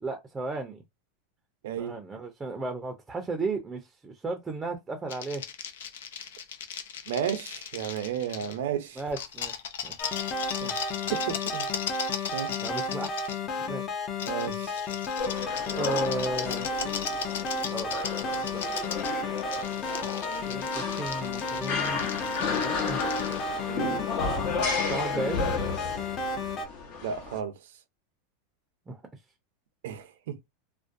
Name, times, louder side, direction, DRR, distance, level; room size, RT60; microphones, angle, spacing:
voice 1, 0.0-0.8 1.8-5.4 9.0-9.5 9.8-10.0 12.6-13.8 15.7-16.7 17.7-17.9 18.5-18.6 20.5-23.1 24.9-25.5 28.9-29.0, right 3 dB, 15° right, 0.5 m, -34 dB
voice 2, 1.6-2.0 7.1-9.0 10.6-11.7 12.3-12.5 14.3-14.8 23.7-24.0 27.0-27.5 29.8-30.4, right 9 dB, 80° right, 0.6 m, -33 dB
sound 1, 5.1-8.6 9.0-13.4 14.2-23.4, left 8 dB, 85° left, 0.5 m, -37 dB
sound 2, 10.0-26.7, left 3 dB, 40° left, 0.6 m, -33 dB
sound 3, 15.2-27.4, left 4 dB, 65° left, 1.0 m, -33 dB
2.5 x 2.1 x 2.5 m
supercardioid pair, 120°, 0 cm